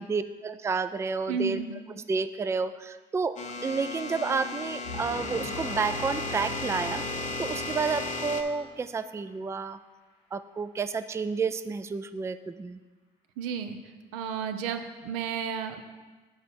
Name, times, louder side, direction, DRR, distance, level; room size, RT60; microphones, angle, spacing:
voice 1, 0.0-1.6 1.9-9.8 10.3-12.8, right 4 dB, 15° right, 11 dB, 0.3 m, -30 dB
voice 2, 1.3-1.8 13.4-13.8 14.1-15.8, right 7 dB, 80° right, 7 dB, 0.6 m, -32 dB
sound 1, 3.4-8.4, left 3 dB, 40° left, 0.8 m, -35 dB
sound 2, 4.8-8.6, left 1 dB, 85° left, 2.4 m, -41 dB
7.1 x 4.2 x 6.0 m, 1.3 s
hypercardioid pair, 55°, 20 cm